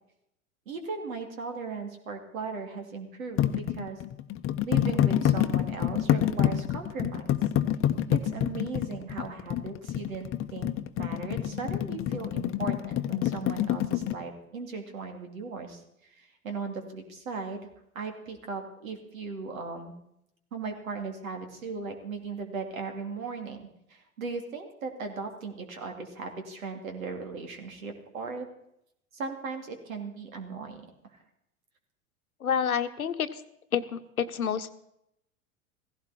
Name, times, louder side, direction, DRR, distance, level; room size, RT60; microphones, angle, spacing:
voice 1, 0.7-4.0 4.6-7.3 8.1-10.7 11.0-15.8 16.2-17.7 17.9-19.9 20.5-23.6 23.9-28.5 29.1-30.8, right 4 dB, 75° right, 5 dB, 2.9 m, -37 dB
sound 1, 3.4-14.2, left 11 dB, 30° left, 0.9 m, -27 dB
voice 2, 32.4-33.4 33.7-34.7, left 8 dB, 85° left, 11 dB, 1.1 m, -29 dB
16.0 x 16.0 x 4.3 m, 0.78 s
figure-of-eight pair, 85°, 42 cm